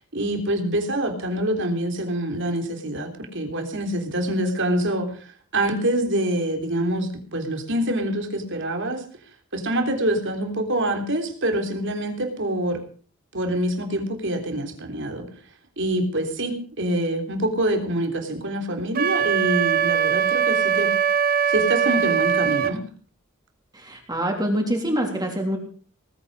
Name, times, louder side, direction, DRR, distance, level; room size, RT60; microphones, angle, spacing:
voice 1, 0.1-5.3 5.5-9.0 9.5-12.8 13.3-15.3 15.8-20.9 21.5-22.8, right 1 dB, 60° right, 4 dB, 3.5 m, -25 dB
Wind instrument woodwind instrument, 18.9-22.7, right 8 dB, 45° right, 1.1 m, -21 dB
voice 2, 23.7-25.6, equal, 20° right, 2 dB, 3.2 m, -25 dB
19.5 x 9.0 x 6.4 m, 0.43 s
head